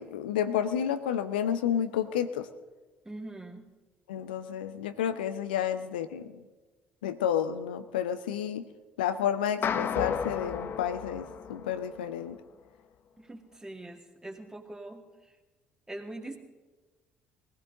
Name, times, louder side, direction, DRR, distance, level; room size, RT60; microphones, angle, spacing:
voice 1, 0.0-2.5 4.1-6.3 7.0-8.7 9.0-12.4, left 9 dB, 75° left, 10 dB, 0.6 m, -30 dB
voice 2, 3.0-3.7 13.2-15.3 15.9-16.4, right 2 dB, 15° right, 3 dB, 2.2 m, -43 dB
sound 1, 9.6-12.1, left 7 dB, 45° left, 0.9 m, -33 dB
20.5 x 15.5 x 3.9 m, 1.2 s
figure-of-eight pair, 50°, 5 cm